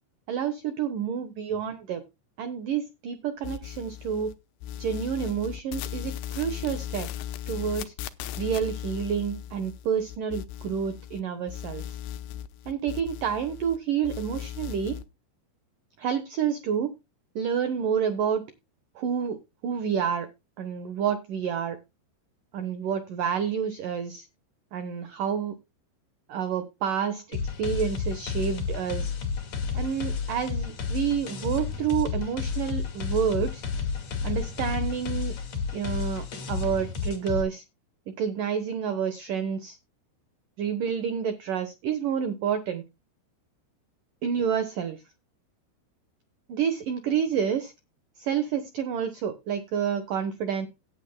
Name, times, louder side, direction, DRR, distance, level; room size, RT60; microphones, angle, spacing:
voice 1, 0.3-2.0 2.4-4.3 4.8-7.1 7.5-7.9 8.4-11.8 12.7-15.0 16.0-16.9 17.4-18.4 19.0-20.3 20.6-21.8 22.5-24.3 24.7-25.6 26.3-29.1 29.7-33.6 34.2-35.3 35.7-37.6 38.2-39.8 40.6-42.8 44.2-45.0 46.5-47.7 48.2-50.7, right 7 dB, 90° right, 11 dB, 1.8 m, -29 dB
sound 1, 3.4-4.3 4.6-11.2 11.5-13.8 14.0-15.0, left 10 dB, 80° left, 2.6 m, -37 dB
sound 2, 27.3-37.4, left 5 dB, 45° left, 2.7 m, -31 dB
17.5 x 9.7 x 2.2 m, 0.25 s
omnidirectional pair, 5.7 m